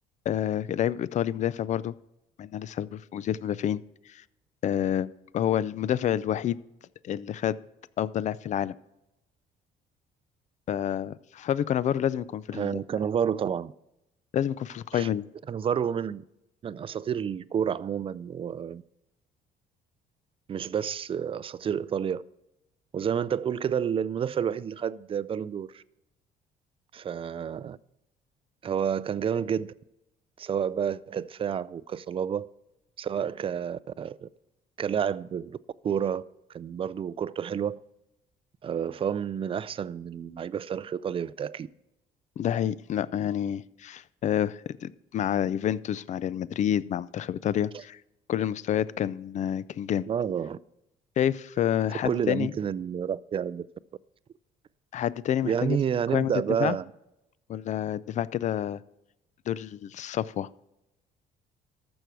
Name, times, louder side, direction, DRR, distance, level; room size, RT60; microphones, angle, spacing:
voice 1, 0.3-1.9 2.4-3.8 4.1-4.2 4.6-6.6 7.0-7.6 8.0-8.8 10.7-12.8 14.3-15.3 42.4-48.0 48.3-50.1 51.2-52.5 54.9-55.8 56.1-56.3 56.6-56.8 57.5-58.8 59.5-60.5, left 10 dB, 45° left, 0.4 m, -28 dB
voice 2, 12.5-13.7 14.9-15.1 15.5-16.2 16.6-18.8 20.5-22.2 22.9-25.8 26.9-27.8 28.6-29.7 30.4-32.5 33.0-34.3 34.8-35.6 35.8-36.2 36.5-37.8 38.6-41.7 47.7-47.8 50.1-50.6 51.9-53.7 55.4-56.9, right 8 dB, 35° right, 0.4 m, -30 dB
13.5 x 6.2 x 4.7 m
cardioid pair, 110°, 17 cm